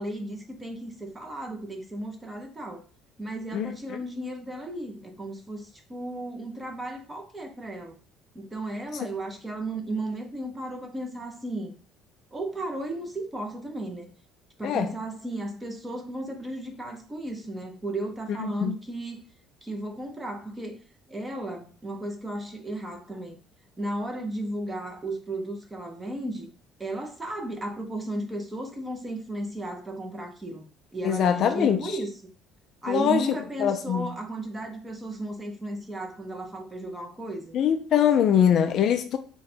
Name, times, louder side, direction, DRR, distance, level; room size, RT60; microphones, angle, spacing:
voice 1, 0.0-2.8 3.2-7.9 8.3-11.7 12.3-14.1 14.6-19.2 19.6-20.8 21.1-23.4 23.8-26.5 26.8-30.7 30.9-32.1 32.8-37.6, right 1 dB, 10° right, 0.6 m, -34 dB
voice 2, 18.4-18.7 31.0-31.8 32.9-33.3 33.6-34.1 37.5-39.2, left 9 dB, 45° left, 0.3 m, -22 dB
3.8 x 2.2 x 4.3 m
cardioid pair, 160°, 0 cm